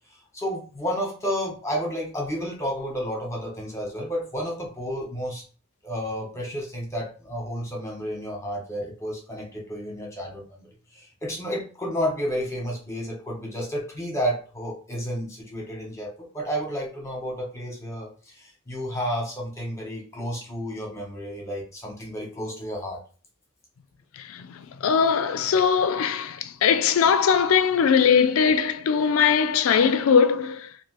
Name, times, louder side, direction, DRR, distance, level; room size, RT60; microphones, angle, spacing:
voice 1, 0.3-5.4 5.8-10.7 10.9-23.0, equal, 15° left, 1.0 m, -31 dB
voice 2, 24.2-30.7, left 6 dB, 85° left, 0.4 m, -21 dB
2.9 x 2.7 x 3.0 m
head